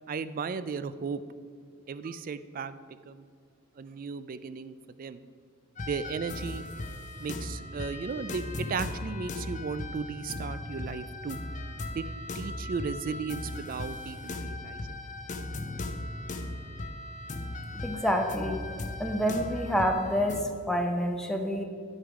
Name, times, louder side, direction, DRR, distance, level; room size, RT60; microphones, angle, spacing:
voice 1, 0.1-1.2 1.9-2.8 3.1-3.2 3.8-5.2 5.9-6.6 7.2-11.4 11.9-12.1 12.3-15.0, right 5 dB, 40° right, 14 dB, 0.3 m, -35 dB
sound 1, 5.8-20.4, left 2 dB, 35° left, 0.7 m, -38 dB
voice 2, 17.8-18.6 19.0-21.6, equal, 5° left, 3 dB, 0.8 m, -28 dB
11.0 x 6.5 x 4.9 m, 2.2 s
head